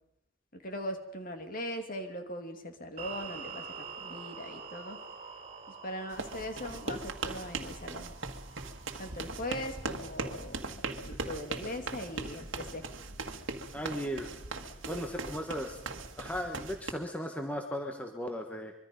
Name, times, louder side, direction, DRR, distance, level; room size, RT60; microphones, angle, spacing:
voice 1, 0.5-3.7 4.0-5.0 5.8-8.1 9.0-12.9, equal, 40° left, 5 dB, 2.5 m, -40 dB
sound 1, 3.0-10.1, right 5 dB, 30° right, 3.3 m, -47 dB
sound 2, 6.1-16.9, right 3 dB, 65° right, 1.8 m, -39 dB
voice 2, 13.7-14.3 14.9-15.8 16.2-18.7, equal, 5° left, 3 dB, 1.3 m, -36 dB
25.0 x 23.5 x 5.4 m, 0.81 s
head